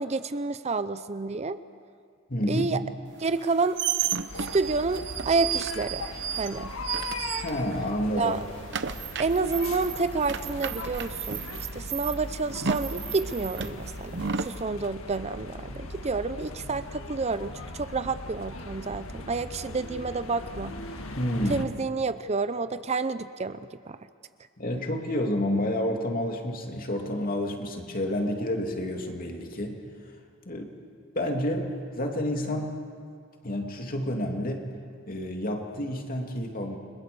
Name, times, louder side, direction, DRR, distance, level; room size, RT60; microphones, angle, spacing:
voice 1, 0.0-1.6 2.5-2.8 3.2-3.8 4.5-6.1 6.4-6.7 8.1-8.4 9.2-11.4 11.7-20.8 21.5-24.0, right 3 dB, 30° right, 13 dB, 0.6 m, -29 dB
voice 2, 2.3-2.7 7.4-8.4 21.2-21.6 24.6-29.8 30.4-30.7 31.1-32.8 33.4-34.7 35.1-36.8, left 1 dB, 45° left, 2 dB, 2.7 m, -29 dB
sound 1, 3.3-7.9 8.2-14.6, right 8 dB, 60° right, 0.9 m, -33 dB
sound 2, 4.3-21.7, left 2 dB, 85° left, 1.8 m, -39 dB
30.0 x 22.0 x 6.9 m, 2.2 s
head